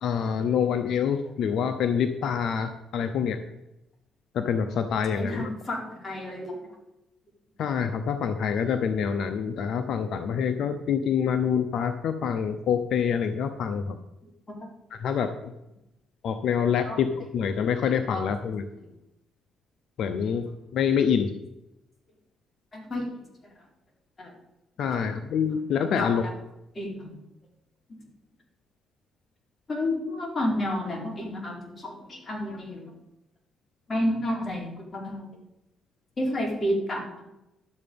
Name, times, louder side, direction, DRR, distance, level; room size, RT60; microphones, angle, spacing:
voice 1, 0.0-3.4 4.3-5.5 7.6-14.0 14.9-15.5 16.2-18.7 20.0-20.5 20.7-21.3 24.8-26.3, left 7 dB, 75° left, 8 dB, 0.8 m, -26 dB
voice 2, 5.1-6.7 14.5-14.7 16.8-17.0 18.1-18.2 22.7-23.5 24.2-24.3 24.9-25.0 25.9-26.3 26.7-27.2 29.7-32.9 33.9-35.3 36.2-37.2, left 1 dB, 30° left, 0 dB, 4.1 m, -31 dB
12.0 x 7.8 x 5.3 m, 0.91 s
cardioid pair, 90°, 0 cm